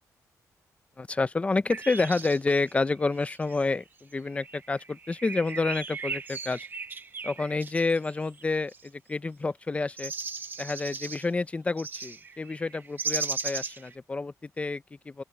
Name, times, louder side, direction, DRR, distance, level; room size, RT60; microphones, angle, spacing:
voice 1, 1.0-6.7 7.2-10.1 10.6-15.2, left 3 dB, 20° left, 0.6 m, -29 dB
sound 1, 1.7-3.7 4.3-8.9 10.0-11.3 11.8-13.9, right 4 dB, 30° right, 1.1 m, -37 dB
open air
wide cardioid pair, 130°, 6 cm